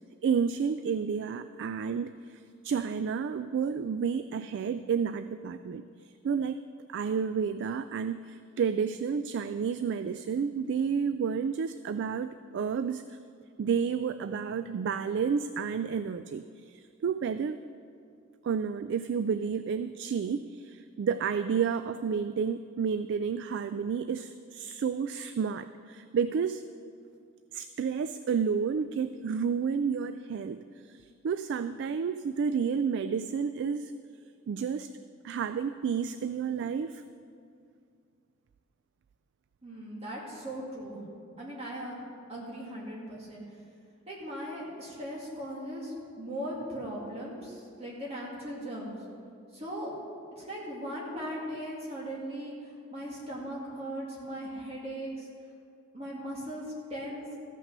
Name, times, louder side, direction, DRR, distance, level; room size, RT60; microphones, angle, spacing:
voice 1, 0.2-5.8 6.2-6.6 6.9-13.2 13.6-17.6 18.4-26.6 27.5-33.9 34.5-34.9 35.2-37.0, right 6 dB, 60° right, 11 dB, 0.3 m, -31 dB
voice 2, 39.6-41.1 41.4-42.0 42.3-43.4 44.1-49.0 49.5-49.9 50.3-55.3 55.9-56.6 56.9-57.2, equal, 30° right, -4 dB, 2.1 m, -38 dB
14.5 x 5.9 x 6.6 m, 2.3 s
head